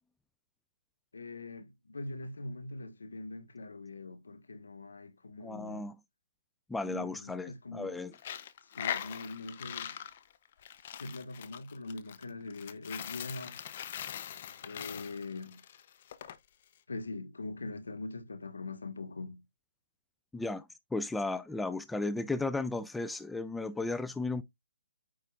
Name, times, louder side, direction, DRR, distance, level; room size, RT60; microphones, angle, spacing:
voice 1, 1.1-5.9 6.8-8.0 8.7-10.0 11.0-13.6 14.6-15.6 16.9-19.4, left 2 dB, 85° left, 1.4 m, -42 dB
voice 2, 5.4-6.0 6.7-8.1 20.3-20.7 20.9-24.4, left 3 dB, 5° left, 0.3 m, -34 dB
Coin (dropping), 8.1-16.4, left 10 dB, 45° left, 0.7 m, -41 dB
9.0 x 4.8 x 2.4 m
hypercardioid pair, 145°, 0 cm